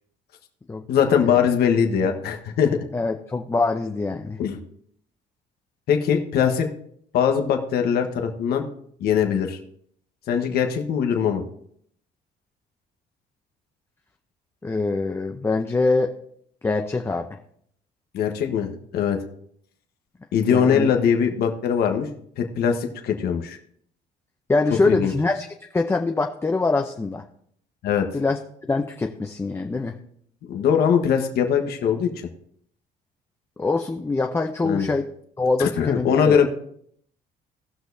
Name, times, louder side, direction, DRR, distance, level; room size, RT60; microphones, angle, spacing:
voice 1, 0.9-2.8 4.4-4.6 5.9-6.7 7.1-8.6 9.0-9.6 10.3-11.4 18.1-19.2 20.3-22.1 22.4-23.6 24.9-25.1 27.8-28.1 30.4-32.1 34.6-34.9 35.6-36.5, left 7 dB, 70° left, 4 dB, 1.3 m, -21 dB
voice 2, 2.9-4.4 14.6-16.1 16.6-17.3 20.5-20.9 24.5-25.5 25.7-27.2 28.1-28.4 28.7-29.9 33.6-35.0 35.4-36.4, left 3 dB, 15° left, 3 dB, 0.7 m, -24 dB
18.0 x 6.2 x 2.7 m, 0.65 s
cardioid pair, 110°, 17 cm